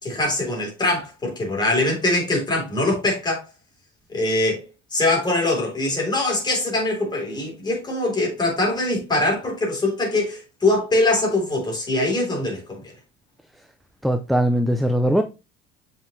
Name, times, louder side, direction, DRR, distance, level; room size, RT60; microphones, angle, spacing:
voice 1, 0.0-3.4 4.1-4.6 4.9-12.8, left 2 dB, 20° left, 3.7 m, -22 dB
voice 2, 14.0-15.2, equal, ahead, 0.5 m, -20 dB
7.0 x 5.6 x 3.2 m
cardioid pair, 135°, 21 cm